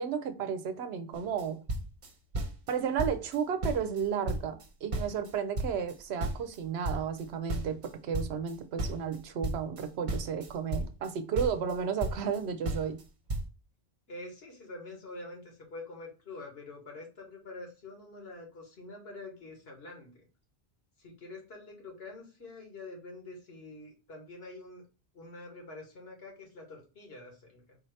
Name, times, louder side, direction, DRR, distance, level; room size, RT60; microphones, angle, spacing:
voice 1, 0.0-1.6 2.7-13.0, right 7 dB, 75° right, 0.8 m, -33 dB
sound 1, 1.1-1.4 1.7-2.7 3.0-3.4 3.6-5.3 5.6-8.5 8.8-11.1 11.4-12.4 12.7-13.0 13.3-13.5, right 1 dB, 50° right, 0.9 m, -34 dB
voice 2, 14.1-20.2 21.0-24.8 25.1-27.8, left 2 dB, 65° left, 1.5 m, -46 dB
4.3 x 2.8 x 3.1 m
omnidirectional pair, 1.1 m